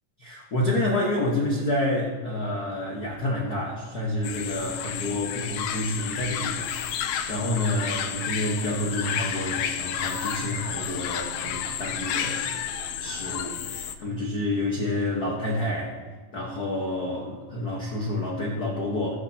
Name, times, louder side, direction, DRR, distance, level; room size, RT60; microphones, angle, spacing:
voice 1, 0.2-6.7 7.0-12.4 13.0-16.0 16.3-19.2, left 1 dB, 65° left, -3 dB, 0.9 m, -29 dB
sound 1, 4.2-13.9, left 8 dB, 85° left, 1.5 m, -31 dB
18.5 x 6.3 x 2.9 m, 1.5 s
omnidirectional pair, 3.8 m